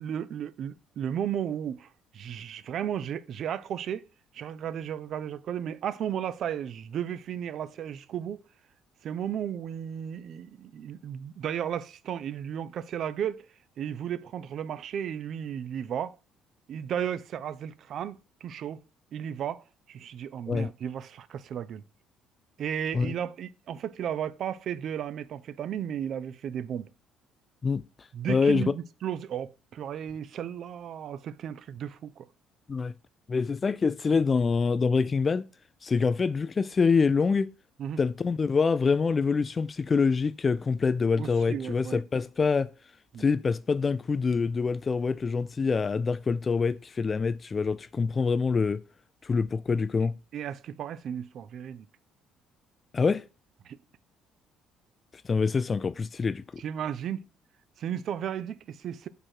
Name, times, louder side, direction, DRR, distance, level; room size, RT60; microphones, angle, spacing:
voice 1, 0.0-1.9 2.1-4.0 4.3-8.4 9.0-13.5 13.8-16.2 16.7-18.8 19.1-21.8 22.6-26.9 28.1-32.3 37.8-38.0 41.2-42.0 43.1-43.2 50.3-51.9 53.6-53.8 56.6-57.2 57.8-59.1, right 9 dB, 60° right, 0.5 m, -34 dB
voice 2, 28.3-28.7 32.7-32.9 33.3-35.4 35.8-37.5 38.0-42.7 43.2-48.8 49.2-50.1 52.9-53.3 55.2-56.6, left 5 dB, 35° left, 0.3 m, -25 dB
5.0 x 4.6 x 4.4 m
supercardioid pair, 85°, 0 cm